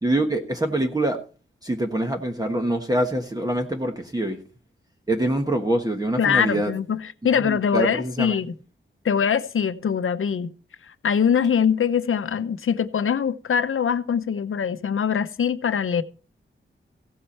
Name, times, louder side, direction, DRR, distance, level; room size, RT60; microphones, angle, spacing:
voice 1, 0.0-1.2 1.6-4.4 5.1-6.7 7.4-8.4, right 1 dB, 20° right, 1.3 m, -25 dB
voice 2, 6.2-8.5 9.0-10.5 11.0-16.0, left 7 dB, 80° left, 0.8 m, -23 dB
15.5 x 7.9 x 4.3 m
wide cardioid pair, 125°, 21 cm